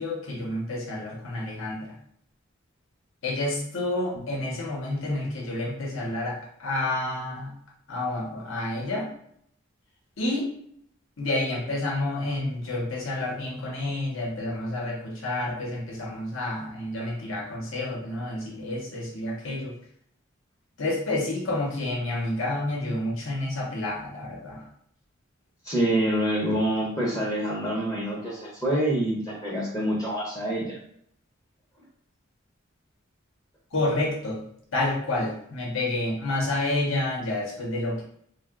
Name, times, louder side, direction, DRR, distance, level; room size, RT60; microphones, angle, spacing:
voice 1, 0.0-1.8 3.2-6.3 6.6-7.5 7.9-9.0 10.2-10.5 11.2-19.7 20.8-24.6 33.7-34.4 34.7-38.0, left 2 dB, 75° left, -2 dB, 0.7 m, -29 dB
voice 2, 25.6-30.8, right 1 dB, 15° left, -4 dB, 0.6 m, -26 dB
2.7 x 2.1 x 3.4 m, 0.68 s
head